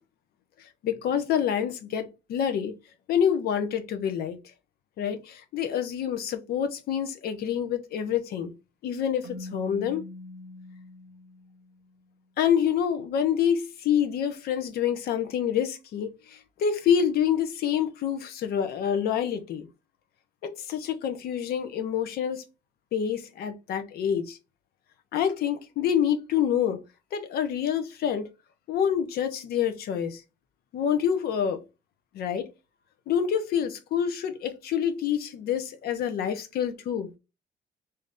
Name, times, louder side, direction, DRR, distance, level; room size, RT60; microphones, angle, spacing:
voice 1, 0.6-2.7 3.1-4.4 5.0-8.5 8.8-10.0 12.4-19.7 20.4-22.4 22.9-24.4 25.1-26.8 27.1-28.3 28.7-30.2 30.7-31.6 32.1-32.5 33.1-37.1, left 8 dB, 65° left, 0.8 m, -27 dB
Keyboard (musical), 9.2-12.0, left 2 dB, 70° right, 0.6 m, -43 dB
3.2 x 2.8 x 3.6 m
cardioid pair, 110°, 17 cm